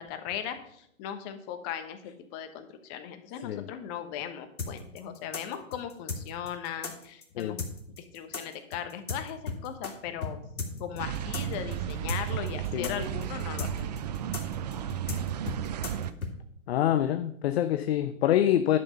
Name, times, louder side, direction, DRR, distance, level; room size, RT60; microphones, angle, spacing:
voice 1, 0.0-7.6 8.1-14.0, left 9 dB, 30° left, 8 dB, 1.1 m, -38 dB
sound 1, 4.6-9.9 10.2-10.3 10.6-16.3, left 4 dB, 90° left, 2.4 m, -35 dB
sound 2, 11.0-16.1, right 10 dB, 30° right, 0.4 m, -33 dB
voice 2, 16.7-18.8, left 11 dB, 50° left, 11 dB, 0.6 m, -26 dB
11.0 x 5.9 x 5.6 m, 0.71 s
hypercardioid pair, 130°, 42 cm